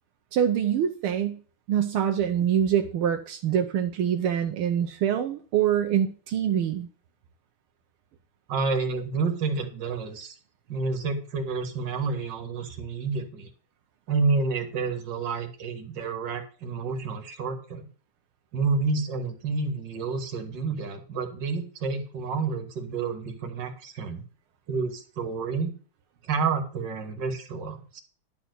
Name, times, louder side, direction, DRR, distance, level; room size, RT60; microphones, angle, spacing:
voice 1, 0.3-1.4 1.7-6.9, right 9 dB, 80° right, 5 dB, 1.7 m, -25 dB
voice 2, 8.5-10.4 10.7-13.5 14.1-17.8 18.5-24.2 24.7-25.7 26.2-28.0, right 4 dB, 55° right, 6 dB, 2.3 m, -29 dB
11.5 x 4.4 x 8.1 m, 0.39 s
omnidirectional pair, 2.3 m